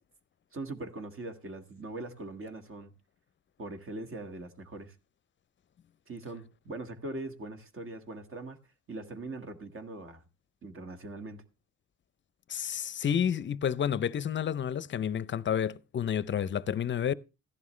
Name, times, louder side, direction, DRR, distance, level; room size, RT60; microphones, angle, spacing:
voice 1, 0.5-2.9 3.6-5.0 6.1-8.6 8.9-10.2 10.6-11.4, right 2 dB, 45° right, 1.8 m, -41 dB
voice 2, 12.5-17.1, left 8 dB, 40° left, 0.6 m, -30 dB
15.0 x 11.0 x 3.2 m
cardioid pair, 90°, 30 cm